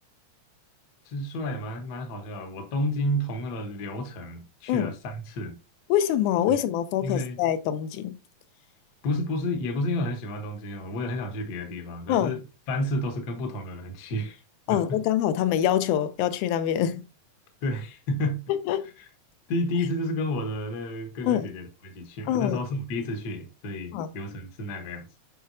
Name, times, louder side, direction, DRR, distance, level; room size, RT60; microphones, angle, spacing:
voice 1, 1.0-5.6 6.5-6.6 7.0-7.4 9.0-12.4 12.7-14.4 14.7-15.0 17.6-18.4 19.0-19.1 19.5-25.1, left 1 dB, 60° left, 1.0 m, -31 dB
voice 2, 5.9-8.1 12.1-12.3 14.7-17.0 18.5-18.9 21.3-21.5 22.3-22.6 23.9-24.1, left 10 dB, 90° left, 2.1 m, -25 dB
7.7 x 5.1 x 2.6 m
omnidirectional pair, 3.4 m